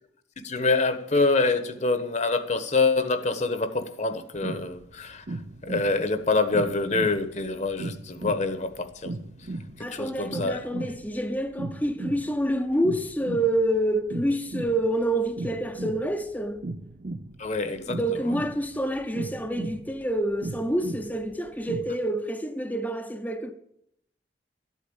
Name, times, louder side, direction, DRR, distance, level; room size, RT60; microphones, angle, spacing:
voice 1, 0.4-9.5 9.8-10.6 17.4-18.0, left 3 dB, 45° left, 1.2 m, -26 dB
sound 1, 4.3-22.0, right 2 dB, 50° right, 0.6 m, -37 dB
voice 2, 9.8-16.6 18.0-23.5, right 1 dB, 10° left, 0.8 m, -27 dB
13.0 x 8.5 x 8.8 m
head